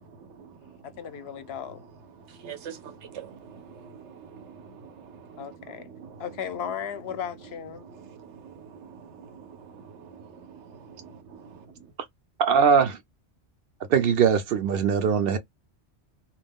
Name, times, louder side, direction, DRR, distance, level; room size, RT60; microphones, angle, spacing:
voice 1, 0.0-0.8 2.2-6.3 7.8-11.9, right 7 dB, 85° right, 1.0 m, -46 dB
voice 2, 0.8-1.8 5.4-5.9 6.2-7.9, left 8 dB, 70° left, 0.8 m, -35 dB
voice 3, 12.4-13.0 13.9-15.4, right 6 dB, 65° right, 0.7 m, -21 dB
2.4 x 2.1 x 3.4 m
omnidirectional pair, 1.1 m